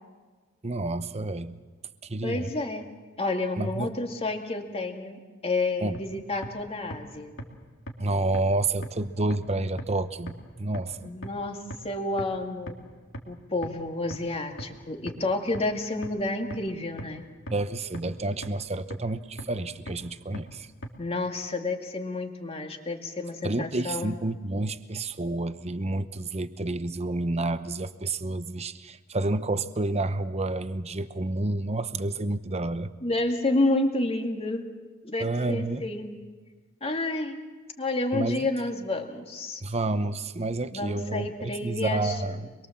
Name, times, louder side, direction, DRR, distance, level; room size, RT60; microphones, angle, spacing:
voice 1, 0.6-1.6 2.0-2.5 3.6-3.9 5.8-6.0 8.0-11.1 17.5-20.7 23.4-32.9 35.2-35.8 38.1-38.4 39.6-42.5, right 2 dB, 30° right, 12 dB, 0.9 m, -29 dB
voice 2, 2.2-2.9 3.2-7.3 11.0-12.7 13.3-17.2 21.0-24.1 33.0-34.6 35.0-36.1 36.8-37.4 37.8-39.6 40.7-42.3, left 2 dB, 30° left, 3 dB, 2.3 m, -30 dB
sound 1, 5.9-6.0 6.4-6.5 6.9-7.0 7.4-7.5 7.9-8.0 8.3-8.4 8.8-8.9 9.3-9.4 9.8-9.9 10.3-10.4 10.7-10.8 11.2-11.3 11.7-11.8 12.2-12.3 12.7-12.8 13.1-13.2 13.6-13.7 14.1-14.2 14.6-14.7 15.1-15.2 15.5-15.6 16.0-16.1 16.5-16.6 17.0-17.1 17.5-17.6 17.9-18.0 18.4-18.5 18.9-19.0 19.4-19.5 19.9-20.0 20.3-20.4 20.8-20.9, equal, 80° left, 2.8 m, -36 dB
25.5 x 22.5 x 7.4 m, 1.4 s
head